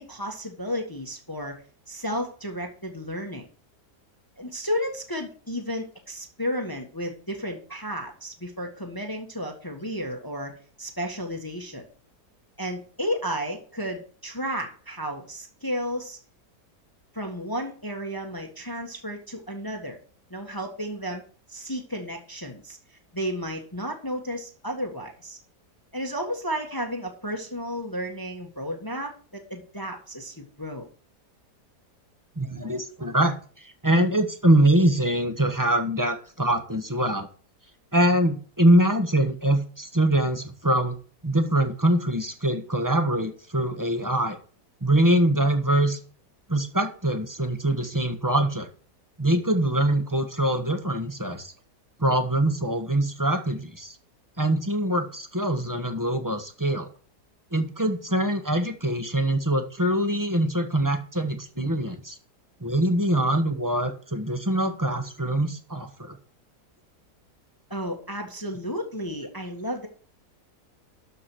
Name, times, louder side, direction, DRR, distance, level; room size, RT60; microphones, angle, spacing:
voice 1, 0.0-1.6 1.9-3.5 4.4-11.8 12.6-16.2 17.1-20.0 20.3-21.2 21.5-22.8 23.1-25.4 25.9-30.9 67.7-69.9, equal, 15° left, 2 dB, 1.5 m, -33 dB
voice 2, 32.4-37.3 37.9-41.0 41.2-44.4 44.8-46.0 46.5-48.7 49.2-51.5 52.0-53.9 54.4-56.9 57.5-62.1 62.6-66.2, right 1 dB, 15° right, 6 dB, 1.1 m, -23 dB
12.5 x 4.9 x 6.2 m, 0.41 s
omnidirectional pair, 1.8 m